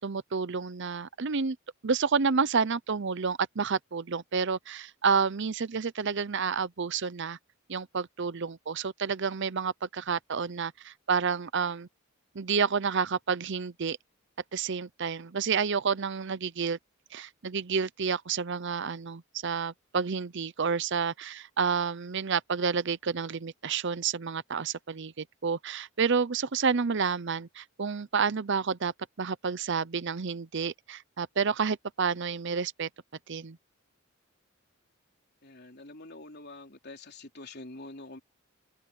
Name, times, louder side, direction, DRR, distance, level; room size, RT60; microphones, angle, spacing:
voice 1, 0.0-1.6 1.8-7.4 7.7-11.9 12.3-14.0 14.5-16.8 17.1-32.9 33.3-33.6, right 5 dB, 60° right, 0.7 m, -29 dB
voice 2, 35.4-38.2, left 2 dB, 50° left, 3.9 m, -46 dB
head